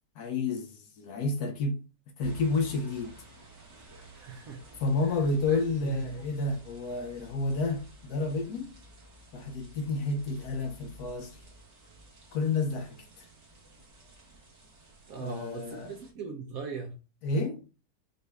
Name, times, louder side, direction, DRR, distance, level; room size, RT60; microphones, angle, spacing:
voice 1, 0.2-1.8 2.2-3.2 4.8-8.7 9.3-11.4 12.3-13.2 15.2-16.0 17.2-17.6, left 3 dB, 70° left, 1.1 m, -30 dB
sound 1, 2.2-16.1, equal, 45° right, 1.5 m, -53 dB
voice 2, 3.8-4.6 5.5-6.3 15.1-17.0, right 5 dB, 60° right, 1.0 m, -40 dB
5.3 x 2.6 x 3.4 m
omnidirectional pair, 2.0 m